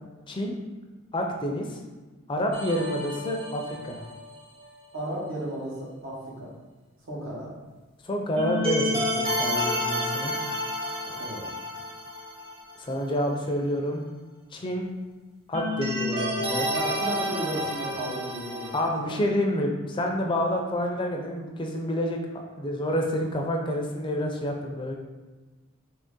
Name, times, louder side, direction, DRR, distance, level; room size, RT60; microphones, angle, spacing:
voice 1, 1.1-1.8 2.3-4.0 8.0-10.3 12.9-14.0 14.5-14.9 15.5-16.7 18.7-24.9, equal, 25° left, 1 dB, 0.4 m, -28 dB
sound 1, 2.5-4.4 8.4-12.7 13.0-13.1 15.5-18.8, left 1 dB, 25° right, 0.7 m, -30 dB
voice 2, 4.9-6.5 7.1-7.6 11.1-11.5 16.7-19.2, right 1 dB, 75° right, -4 dB, 1.0 m, -34 dB
3.0 x 2.7 x 3.6 m, 1.2 s
head